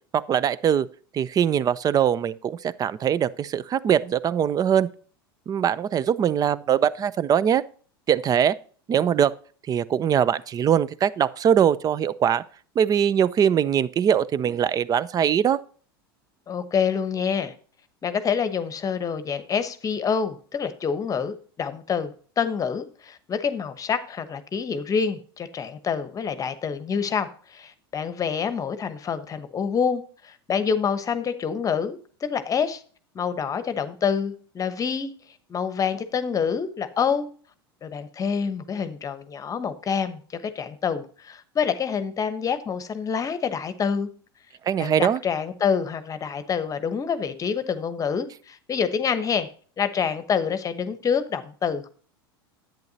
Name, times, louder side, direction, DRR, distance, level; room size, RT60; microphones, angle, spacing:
voice 1, 0.1-0.9 1.1-4.9 5.5-7.6 8.1-8.6 8.9-9.3 9.7-12.4 12.8-15.6 44.6-45.2, right 9 dB, 30° right, 0.6 m, -22 dB
voice 2, 16.5-17.5 18.0-32.8 33.1-35.1 35.5-37.3 37.8-44.1 44.8-49.5 49.8-51.9, left 6 dB, 25° left, 1.0 m, -27 dB
10.5 x 8.8 x 2.8 m
hypercardioid pair, 90°, 13 cm